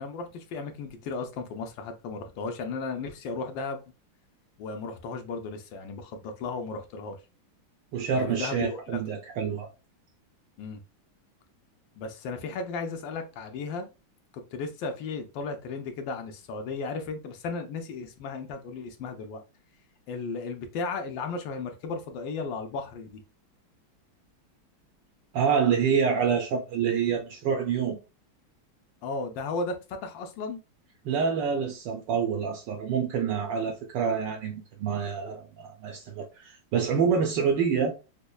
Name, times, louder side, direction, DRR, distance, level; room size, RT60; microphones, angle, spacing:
voice 1, 0.0-3.8 4.6-7.2 8.1-8.8 10.6-10.8 12.0-13.9 14.3-19.4 20.1-23.2 29.0-30.6, left 4 dB, 75° left, 1.3 m, -35 dB
voice 2, 7.9-9.7 25.3-27.9 31.0-37.9, right 6 dB, 75° right, 1.1 m, -27 dB
5.1 x 2.1 x 2.3 m
omnidirectional pair, 2.2 m